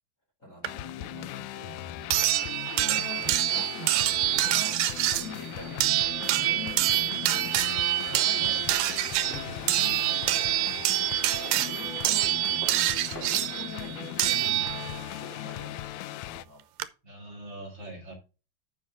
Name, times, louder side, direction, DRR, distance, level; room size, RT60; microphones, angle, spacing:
voice 1, 0.4-2.3 2.8-4.8 5.1-6.1 6.3-7.7 8.1-8.7 9.2-10.5 11.5-12.4 13.0-16.6, left 1 dB, 25° left, 2.4 m, -45 dB
sound 1, 0.6-16.5, left 15 dB, 85° left, 1.8 m, -39 dB
sound 2, 0.6-0.7 2.1-15.1 16.4-16.5 16.8-16.9, right 15 dB, 90° right, 2.3 m, -26 dB
sound 3, 5.0-13.7, right 2 dB, 5° right, 1.7 m, -46 dB
voice 2, 17.0-18.1, right 1 dB, 35° right, 2.8 m, -43 dB
10.5 x 5.8 x 3.5 m
omnidirectional pair, 3.9 m